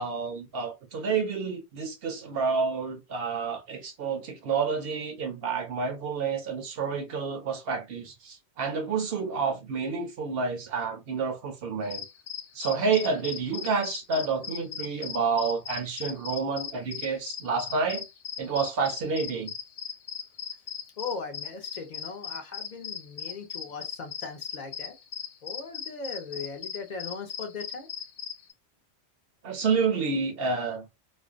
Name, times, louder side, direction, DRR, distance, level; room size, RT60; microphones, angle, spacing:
voice 1, 0.0-12.0 12.5-18.0 18.4-19.5 29.4-30.9, right 5 dB, 65° right, 0.8 m, -29 dB
sound 1, 11.8-28.5, left 8 dB, 90° left, 0.9 m, -39 dB
voice 2, 21.0-24.9 25.4-27.9, left 4 dB, 50° left, 0.6 m, -38 dB
2.4 x 2.1 x 2.4 m
omnidirectional pair, 1.2 m